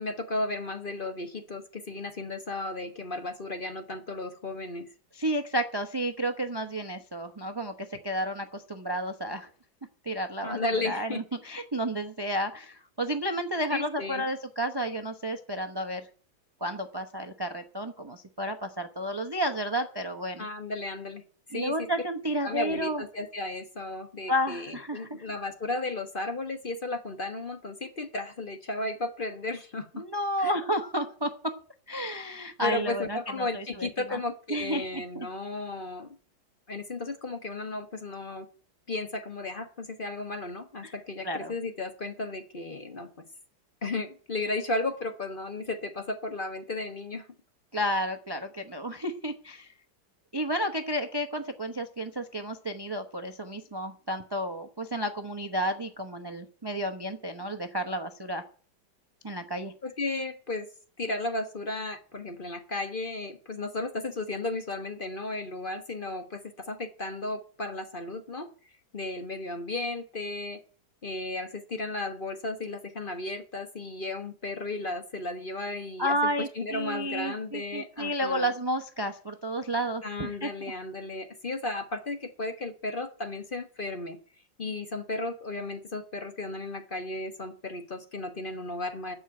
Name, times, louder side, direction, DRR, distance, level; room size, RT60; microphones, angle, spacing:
voice 1, 0.0-4.9 10.4-11.2 13.7-14.2 20.4-21.2 21.5-21.7 22.4-30.0 30.4-30.6 32.6-36.2 36.7-38.5 38.9-43.1 43.8-47.3 59.8-60.7 61.0-66.4 66.7-68.5 68.9-70.6 71.0-78.5 80.0-84.2 84.6-89.1, left 2 dB, 35° left, 7 dB, 1.1 m, -34 dB
voice 2, 5.1-9.5 10.0-16.1 16.6-20.4 21.5-23.0 24.3-25.3 29.9-31.5 31.9-34.2 34.5-35.3 40.8-40.9 41.2-41.5 47.7-49.7 50.3-58.4 59.2-59.7 76.0-80.7, equal, 35° right, 6 dB, 0.4 m, -31 dB
14.5 x 5.5 x 9.5 m, 0.43 s
omnidirectional pair, 2.1 m